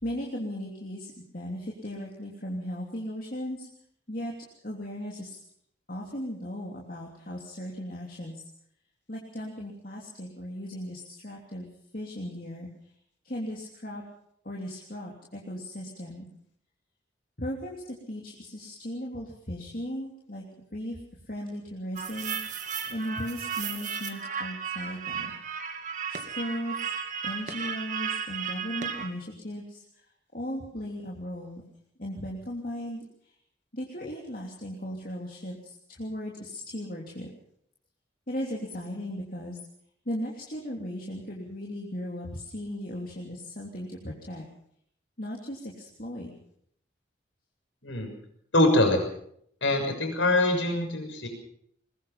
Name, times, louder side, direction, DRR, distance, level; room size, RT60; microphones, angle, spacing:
voice 1, 0.0-3.7 4.1-4.3 4.6-5.4 5.9-8.5 9.1-12.7 13.2-14.0 14.4-16.3 17.4-20.4 20.7-21.0 21.3-22.6 22.9-25.3 26.1-26.9 27.2-31.6 32.0-33.0 33.7-37.3 38.3-39.6 40.0-44.5 45.2-46.3, equal, 50° left, -2 dB, 3.1 m, -37 dB
sound 1, 22.0-29.1, right 7 dB, 45° right, 2.2 m, -34 dB
voice 2, 48.5-49.0 49.6-51.3, left 1 dB, 90° left, 4 dB, 6.5 m, -23 dB
21.5 x 21.5 x 5.8 m, 0.67 s
head